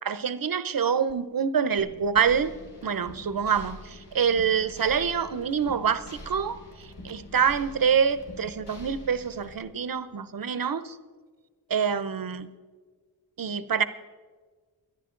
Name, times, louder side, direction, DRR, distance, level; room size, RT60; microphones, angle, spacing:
voice 1, 0.0-2.5 2.8-11.0 11.7-12.5 13.4-13.8, right 7 dB, 55° right, 13 dB, 0.8 m, -26 dB
sound 1, 1.8-9.6, left 1 dB, 70° left, 2.9 m, -45 dB
24.0 x 10.5 x 3.8 m, 1.4 s
wide cardioid pair, 105°, 42 cm